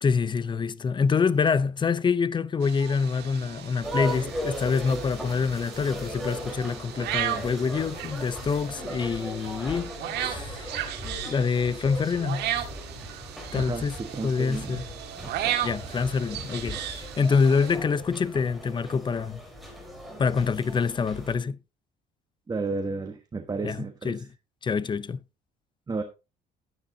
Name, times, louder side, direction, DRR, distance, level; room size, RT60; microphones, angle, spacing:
voice 1, 0.0-9.9 10.2-10.8 11.2-12.5 13.5-14.0 14.2-14.8 15.6-19.4 20.2-21.6 23.6-23.8 24.0-24.3 24.6-25.2, left 5 dB, 30° left, 0.6 m, -26 dB
sound 1, 2.6-17.8, right 11 dB, 80° right, 1.7 m, -36 dB
sound 2, 3.8-21.3, equal, ahead, 4.2 m, -38 dB
voice 2, 13.5-14.9 15.2-15.6 22.5-24.3 25.9-26.0, right 3 dB, 25° right, 1.3 m, -33 dB
12.0 x 10.0 x 2.8 m
cardioid pair, 110°, 17 cm